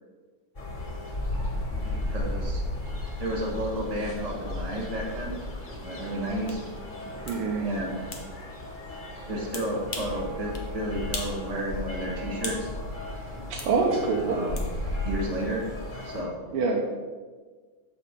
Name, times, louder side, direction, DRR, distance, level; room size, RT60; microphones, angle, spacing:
sound 1, 0.5-16.2, left 1 dB, 25° left, 1.3 m, -35 dB
voice 1, 1.7-2.6 3.2-5.4 5.8-6.6 7.6-8.1 9.2-12.7 14.3-14.7 15.0-15.7 16.0-16.4, right 1 dB, 30° right, -3 dB, 0.7 m, -32 dB
sound 2, 6.5-6.6 7.3-7.4 8.1-8.3 9.5-10.2 10.5-10.7 11.1-11.4 11.7-12.7 13.6-13.7 14.6-14.7, left 4 dB, 70° left, 0.5 m, -37 dB
voice 2, 7.2-7.7 13.5-14.4 16.5-16.9, right 4 dB, 85° right, 0 dB, 1.6 m, -25 dB
6.8 x 5.2 x 5.0 m, 1.4 s
omnidirectional pair, 2.4 m